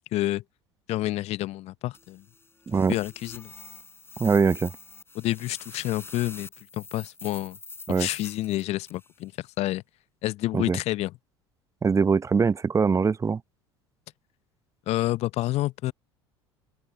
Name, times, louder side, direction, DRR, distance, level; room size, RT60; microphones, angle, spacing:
voice 1, 0.1-0.4 0.9-2.2 2.9-3.5 5.1-6.5 6.7-7.6 7.9-9.8 10.2-11.1 14.9-15.9, left 16 dB, 50° left, 0.8 m, -29 dB
sound 1, 1.9-9.1, left 3 dB, 15° left, 5.3 m, -45 dB
voice 2, 4.2-4.7 7.9-8.1 10.5-10.8 11.8-13.4, right 5 dB, 20° right, 0.9 m, -22 dB
open air
figure-of-eight pair, 65°, 14 cm